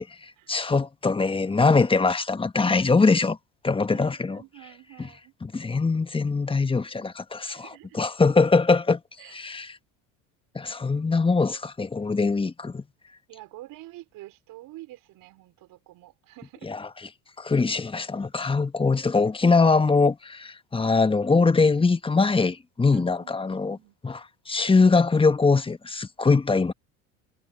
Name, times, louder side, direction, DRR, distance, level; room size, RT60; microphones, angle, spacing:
voice 1, 0.0-3.4 3.6-4.4 5.0-5.1 5.4-9.0 9.3-9.7 10.5-12.8 16.6-16.9 17.4-23.8 24.0-26.7, left 4 dB, 15° left, 1.2 m, -22 dB
voice 2, 3.9-5.7 7.5-8.2 9.2-9.5 13.3-16.7 22.9-24.0, right 17 dB, 60° right, 4.3 m, -48 dB
hypercardioid pair, 80°, 38 cm